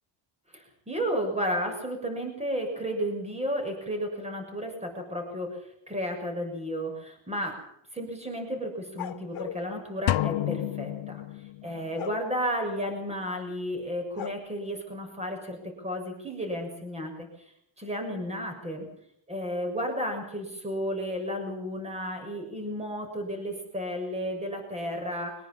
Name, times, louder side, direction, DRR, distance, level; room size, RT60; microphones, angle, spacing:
voice 1, 0.5-5.6 5.9-7.6 7.9-11.2 11.6-17.3 17.8-18.9 19.3-25.4, equal, 15° right, 4 dB, 6.6 m, -33 dB
sound 1, 9.0-9.6 12.0-12.2 14.1-14.3, left 10 dB, 50° left, 2.0 m, -36 dB
sound 2, 10.1-11.9, left 18 dB, 75° left, 0.8 m, -29 dB
24.0 x 21.5 x 5.7 m, 0.74 s
cardioid pair, 140°, 45 cm